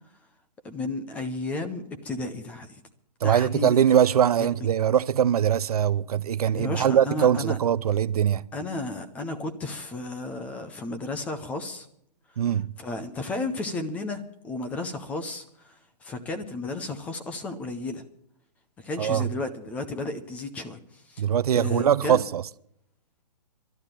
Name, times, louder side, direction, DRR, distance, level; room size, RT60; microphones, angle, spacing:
voice 1, 0.6-2.8 3.2-3.8 6.5-7.6 8.5-11.9 12.8-18.0 18.8-21.2 21.5-22.2, left 2 dB, 5° left, 0.5 m, -33 dB
voice 2, 3.2-8.4 12.4-12.7 19.0-19.3 21.2-22.4, right 9 dB, 65° right, 0.5 m, -22 dB
12.0 x 10.5 x 8.9 m
hypercardioid pair, 155°, 21 cm